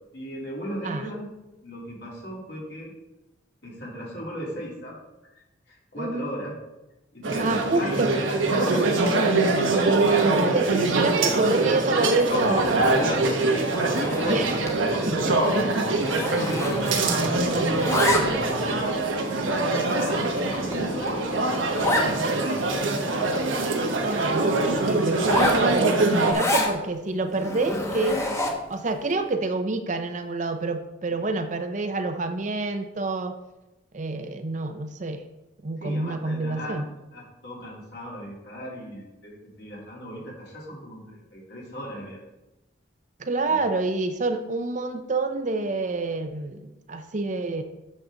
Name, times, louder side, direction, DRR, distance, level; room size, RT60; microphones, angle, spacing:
voice 1, 0.1-1.3 1.6-2.9 3.6-5.0 5.7-6.5 7.1-9.0 12.3-13.5 13.7-14.6 14.9-18.9 19.5-21.3 21.8-22.9 31.1-31.2 35.8-36.8 37.1-42.2 43.5-43.6, equal, 60° left, -5 dB, 3.3 m, -36 dB
voice 2, 6.0-6.3 7.4-8.1 9.8-13.2 14.3-14.5 15.1-15.4 15.9-16.1 24.0-28.3 28.7-33.4 33.9-35.2 35.6-36.8 43.2-47.6, right 3 dB, 40° right, 7 dB, 0.6 m, -27 dB
sound 1, 7.2-26.3, right 2 dB, 90° right, 1.2 m, -23 dB
Zipper (clothing), 13.8-14.8 15.1-15.3 15.6-17.3 17.6-18.6 19.2-19.3 19.9-20.0 20.4-20.5 20.7-20.8 21.1-21.2 21.8-22.1 22.6-22.7 22.9-24.2 25.1-26.7 27.3-28.7, left 1 dB, 15° left, 1.0 m, -28 dB
8.5 x 6.6 x 3.8 m, 1.0 s
head